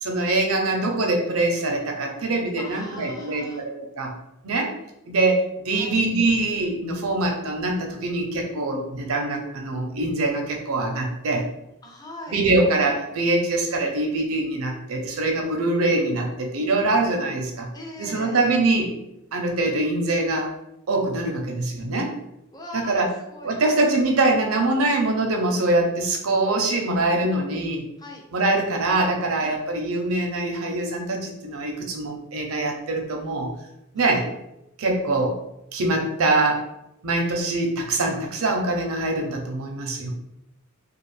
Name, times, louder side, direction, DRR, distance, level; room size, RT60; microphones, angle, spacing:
voice 1, 0.0-4.1 4.4-4.7 5.1-11.5 12.3-17.7 18.0-18.9 19.3-20.5 20.9-22.1 22.7-23.1 23.4-27.8 28.3-33.5 33.9-34.2 34.8-35.3 35.7-36.6 37.0-40.1, right 2 dB, 85° right, 2 dB, 0.6 m, -23 dB
voice 2, 2.6-3.6 5.7-6.1 11.8-12.4 17.7-18.5 22.5-23.8 28.0-28.2 29.4-29.6 34.0-34.3, left 1 dB, 20° left, 0 dB, 0.5 m, -40 dB
2.4 x 2.4 x 3.2 m, 0.85 s
head